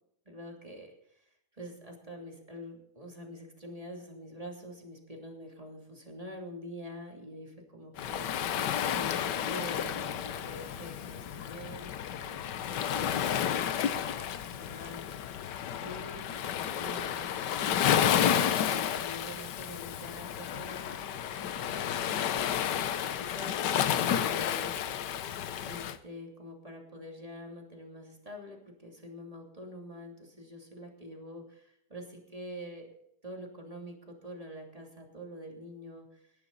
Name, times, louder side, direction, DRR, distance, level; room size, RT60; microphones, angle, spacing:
voice 1, 0.3-0.9 1.5-15.0 15.8-22.9 23.2-24.8 25.6-32.9 33.2-36.3, equal, 20° right, 1 dB, 2.9 m, -46 dB
Waves surf, 8.0-26.0, left 9 dB, 85° left, 1.5 m, -31 dB
18.0 x 11.0 x 4.0 m, 0.74 s
omnidirectional pair, 1.8 m